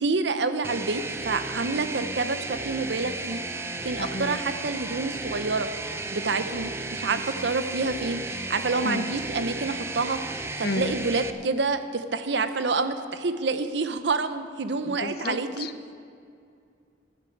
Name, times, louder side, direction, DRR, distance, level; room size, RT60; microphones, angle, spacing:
voice 1, 0.0-3.4 3.8-15.7, right 3 dB, 70° right, 10 dB, 0.8 m, -28 dB
sound 1, 0.6-11.3, right 2 dB, 15° right, 0.5 m, -34 dB
voice 2, 4.0-4.3 8.8-9.0 10.6-11.0 14.8-15.9, left 2 dB, 55° left, 10 dB, 0.7 m, -32 dB
12.0 x 10.5 x 8.0 m, 2.5 s
head